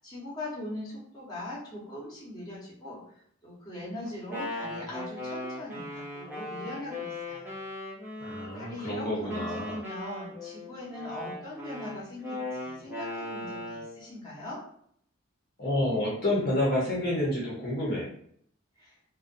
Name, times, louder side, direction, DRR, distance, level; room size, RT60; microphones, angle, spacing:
voice 1, 0.0-7.6 8.5-14.6 18.8-19.0, left 1 dB, 20° left, -7 dB, 0.9 m, -41 dB
Wind instrument woodwind instrument, 4.1-8.8 9.3-14.0, left 2 dB, 10° right, 0.6 m, -38 dB
voice 2, 8.2-9.8 15.6-18.1, left 1 dB, 50° left, -5 dB, 0.7 m, -29 dB
2.4 x 2.1 x 2.5 m, 0.65 s
head